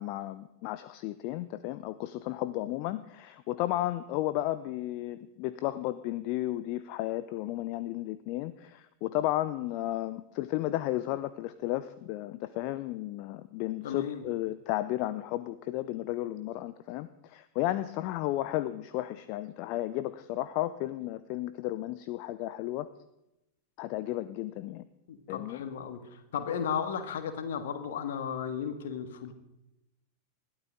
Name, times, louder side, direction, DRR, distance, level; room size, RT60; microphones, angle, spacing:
voice 1, 0.0-22.9 23.8-24.8 25.3-25.6, left 15 dB, 45° left, 15 dB, 0.6 m, -33 dB
voice 2, 13.8-14.2 25.1-29.3, left 7 dB, 60° left, 9 dB, 1.8 m, -35 dB
20.5 x 13.0 x 3.8 m, 0.91 s
figure-of-eight pair, 90°, 0 cm